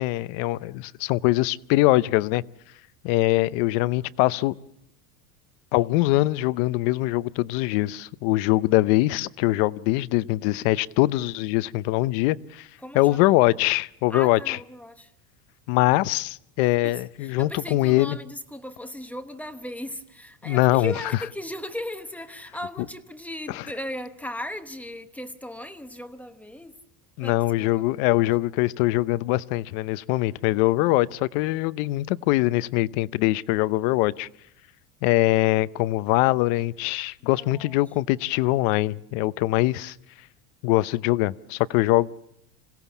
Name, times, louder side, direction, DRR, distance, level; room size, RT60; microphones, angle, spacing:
voice 1, 0.0-2.4 3.0-4.5 5.7-12.7 12.9-14.6 15.7-18.2 20.4-20.9 23.5-23.6 27.2-34.3 35.0-39.9 40.6-42.1, left 18 dB, 60° left, 0.8 m, -23 dB
voice 2, 12.8-13.2 14.1-15.1 16.6-26.7 27.2-27.8 37.2-37.8, left 1 dB, 5° left, 0.9 m, -37 dB
27.0 x 17.0 x 7.1 m
supercardioid pair, 145°, 45 cm